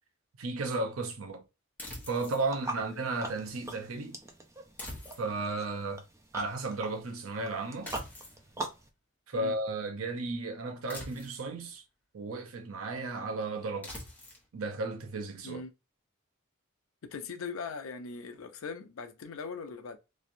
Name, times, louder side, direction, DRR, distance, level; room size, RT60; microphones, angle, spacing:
voice 1, 0.4-1.4 2.1-4.2 5.2-6.0 6.3-7.9 9.3-11.8 12.1-14.0 14.5-15.6, right 3 dB, 75° right, 0.6 m, -34 dB
sound 1, 1.8-2.5 4.8-5.5 7.9-8.4 10.9-11.5 13.8-14.5, left 1 dB, 10° left, 1.1 m, -44 dB
sound 2, 2.4-8.9, right 2 dB, 15° right, 0.4 m, -43 dB
voice 2, 17.0-20.0, left 4 dB, 70° left, 0.5 m, -40 dB
3.1 x 2.5 x 2.5 m
head